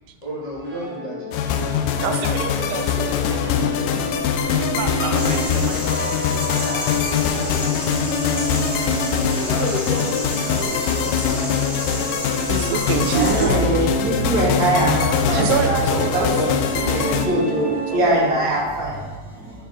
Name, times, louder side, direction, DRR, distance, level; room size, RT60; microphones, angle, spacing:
voice 1, 0.2-2.1 3.2-4.8 7.4-8.5 9.3-11.6 18.1-18.7, equal, 50° left, -8 dB, 0.4 m, -33 dB
sound 1, 0.6-18.3, equal, 30° left, 2.6 m, -31 dB
sound 2, 1.3-17.3, left 7 dB, 80° left, 2.1 m, -23 dB
voice 2, 2.0-3.6 4.6-7.0 9.9-10.1 12.4-14.0 15.3-16.4 16.7-17.2 17.5-18.2, right 7 dB, 85° right, 7 dB, 2.2 m, -28 dB
sound 3, 5.1-13.4, equal, ahead, 1.1 m, -32 dB
voice 3, 13.1-15.8 16.1-16.5 16.9-19.5, right 1 dB, 35° right, -6 dB, 1.5 m, -22 dB
7.7 x 5.8 x 3.6 m, 1.4 s
omnidirectional pair, 4.0 m